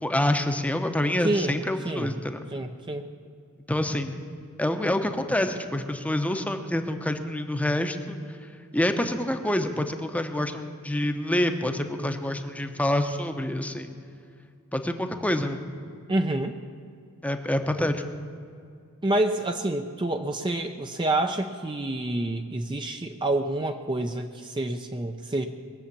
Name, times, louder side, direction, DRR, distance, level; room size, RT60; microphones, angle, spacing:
voice 1, 0.0-2.4 3.7-4.2 4.6-8.2 8.7-13.9 14.7-15.6 17.2-18.0, left 1 dB, 5° left, 7 dB, 0.8 m, -27 dB
voice 2, 1.2-1.6 1.9-2.1 2.5-3.1 16.1-16.5 19.0-25.5, right 2 dB, 20° right, 5 dB, 0.6 m, -27 dB
21.0 x 7.1 x 8.5 m, 2.4 s
head